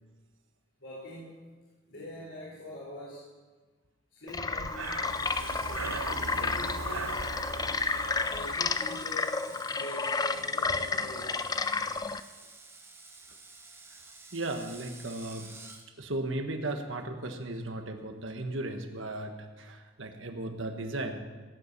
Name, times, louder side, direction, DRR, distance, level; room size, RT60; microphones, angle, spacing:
voice 1, 0.8-1.4 1.9-3.3 4.1-5.0 5.7-7.1 8.2-11.5, equal, 65° left, -6 dB, 3.8 m, -44 dB
sound 1, 4.3-12.2, left 4 dB, 20° left, 0.4 m, -31 dB
Breathing, 4.4-9.3, right 4 dB, 85° right, 0.9 m, -39 dB
Screech, 4.8-15.8, right 3 dB, 15° right, 1.3 m, -51 dB
voice 2, 14.3-15.5 16.0-21.2, right 2 dB, 70° right, 5 dB, 1.4 m, -36 dB
16.5 x 8.7 x 6.8 m, 1.3 s
head